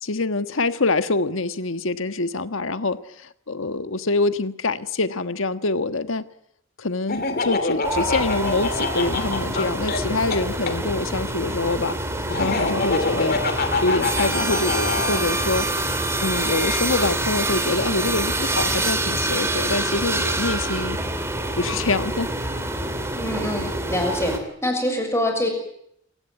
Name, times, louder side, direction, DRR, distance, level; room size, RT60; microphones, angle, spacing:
voice 1, 0.0-6.2 6.8-11.9 12.4-13.4 13.8-15.7 16.2-21.0 21.6-22.6, left 3 dB, 80° left, 10 dB, 1.4 m, -25 dB
Laughter, 7.1-10.8 12.3-15.2, left 3 dB, 50° left, 2.7 m, -26 dB
sound 1, 7.8-24.4, right 2 dB, 15° right, 2.9 m, -26 dB
voice 2, 23.1-24.3 24.6-25.5, left 1 dB, 15° left, 4 dB, 6.5 m, -24 dB
28.0 x 17.0 x 9.5 m, 0.73 s
head